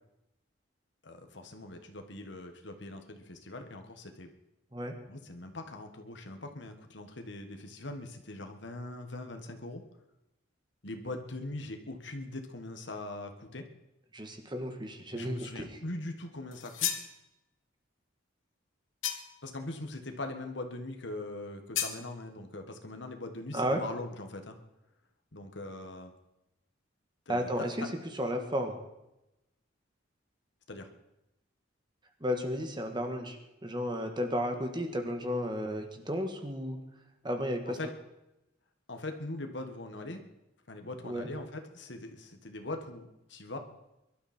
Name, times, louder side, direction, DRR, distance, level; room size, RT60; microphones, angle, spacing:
voice 1, 1.0-4.3 5.1-9.8 10.8-13.6 15.1-17.0 19.4-24.6 25.3-26.1 27.3-27.7 30.7-30.9 37.7-37.9 38.9-40.2 40.7-43.6, left 2 dB, 60° left, 5 dB, 1.7 m, -41 dB
voice 2, 14.1-15.7 23.5-23.8 27.3-27.9 28.1-28.8 32.2-33.4 33.6-36.8 37.2-37.8 41.0-41.3, equal, 25° right, 5 dB, 1.7 m, -33 dB
sound 1, 16.5-17.1 19.0-19.5 21.7-22.0, left 10 dB, 85° left, 1.5 m, -33 dB
23.0 x 12.5 x 4.4 m, 0.92 s
head